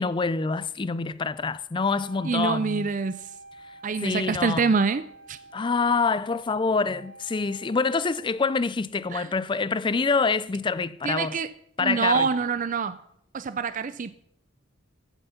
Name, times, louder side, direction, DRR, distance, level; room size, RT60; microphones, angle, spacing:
voice 1, 0.0-2.9 4.0-4.7 5.5-11.3 11.8-12.3, left 4 dB, 25° left, 0.4 m, -26 dB
Wind instrument woodwind instrument, 1.7-8.7, right 2 dB, 85° right, 2.7 m, -48 dB
voice 2, 2.2-3.3 3.8-5.4 9.1-9.3 11.0-11.5 11.8-13.0 13.3-14.1, right 5 dB, 40° right, 0.4 m, -26 dB
15.5 x 7.2 x 5.7 m
head